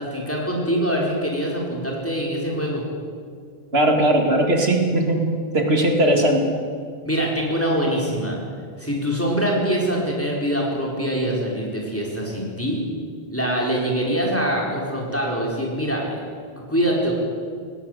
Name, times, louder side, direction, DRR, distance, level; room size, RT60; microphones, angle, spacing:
voice 1, 0.0-2.8 7.0-8.4 8.8-12.8 13.3-16.2 16.6-17.1, equal, 15° left, -2 dB, 4.7 m, -24 dB
voice 2, 3.7-6.4, right 1 dB, 80° right, 3 dB, 2.6 m, -19 dB
19.0 x 18.0 x 8.2 m, 2.1 s
omnidirectional pair, 1.0 m